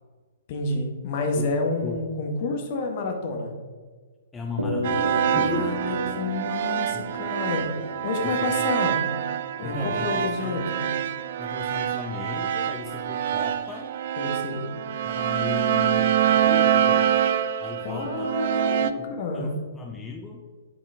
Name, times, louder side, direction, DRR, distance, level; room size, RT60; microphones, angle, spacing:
voice 1, 0.5-3.6 5.4-9.1 9.6-10.9 14.2-14.7 17.8-18.8 19.2-19.5, left 3 dB, 40° left, 3 dB, 1.2 m, -29 dB
voice 2, 4.3-5.0 5.3-5.7 6.9-7.1 8.2-8.7 9.6-10.6 11.4-13.9 15.1-17.1 17.6-18.3 18.8-20.5, left 4 dB, 10° left, 1 dB, 0.5 m, -36 dB
sound 1, 4.6-9.2, left 1 dB, 80° right, 0.8 m, -33 dB
sound 2, 4.8-18.9, right 9 dB, 50° right, 0.4 m, -25 dB
7.7 x 4.5 x 3.4 m, 1.5 s
figure-of-eight pair, 120°, 0 cm